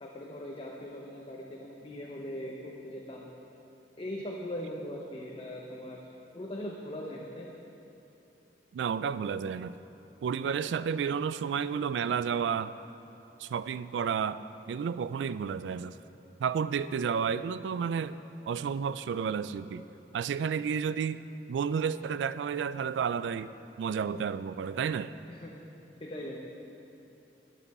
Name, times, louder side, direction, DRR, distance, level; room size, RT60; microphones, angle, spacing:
voice 1, 0.0-3.3 4.0-6.0 6.3-7.6 25.3-25.5 26.0-26.4, left 1 dB, 30° left, -2 dB, 0.7 m, -40 dB
voice 2, 8.7-9.7 10.2-12.8 13.4-14.4 14.7-16.0 16.4-18.2 18.5-19.8 20.1-21.2 21.5-23.5 23.8-25.1, right 7 dB, 85° right, 14 dB, 0.3 m, -31 dB
12.0 x 8.4 x 4.2 m, 3.0 s
head